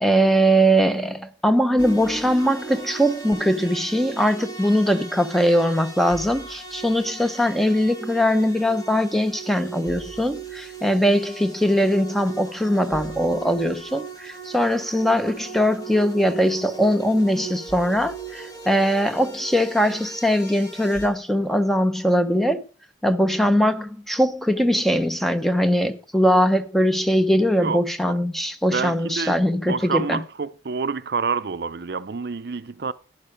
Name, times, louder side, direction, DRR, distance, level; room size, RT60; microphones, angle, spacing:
voice 1, 0.0-22.6 23.0-30.2, equal, ahead, 0.8 m, -21 dB
sound 1, 1.8-21.1, right 4 dB, 25° left, 2.7 m, -38 dB
voice 2, 28.7-32.9, right 5 dB, 60° right, 0.5 m, -28 dB
11.5 x 9.8 x 5.0 m
head